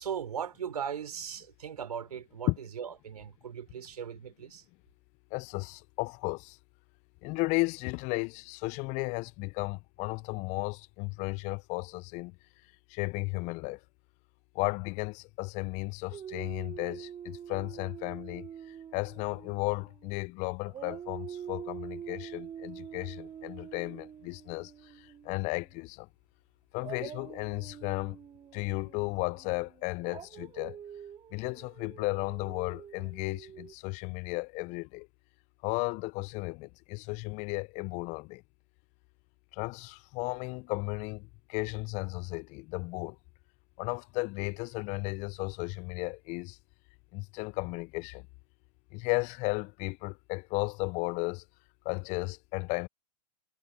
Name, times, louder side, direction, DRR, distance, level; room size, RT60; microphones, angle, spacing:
voice 1, 0.0-4.6, right 8 dB, 80° right, 4.7 m, -38 dB
voice 2, 5.3-6.6 7.2-12.3 12.9-13.8 14.6-18.5 18.9-24.7 25.2-26.1 26.7-28.2 28.5-30.8 31.3-35.1 35.6-38.4 39.6-43.2 43.8-46.6 47.1-48.2 48.9-51.4 51.9-52.9, left 26 dB, 40° left, 0.6 m, -34 dB
Dog, 16.1-20.3 20.7-25.7 26.8-33.7, right 9 dB, 25° right, 4.0 m, -45 dB
hypercardioid pair, 105°, 20 cm